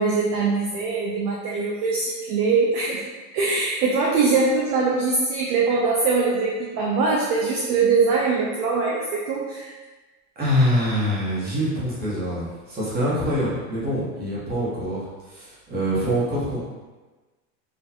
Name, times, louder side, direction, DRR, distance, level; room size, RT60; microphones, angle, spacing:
voice 1, 0.0-3.0 3.3-9.7, right 4 dB, 45° right, -3 dB, 0.5 m, -22 dB
voice 2, 10.4-16.6, equal, 20° right, -7 dB, 1.1 m, -25 dB
4.2 x 2.5 x 2.8 m, 1.2 s
supercardioid pair, 145°, 48 cm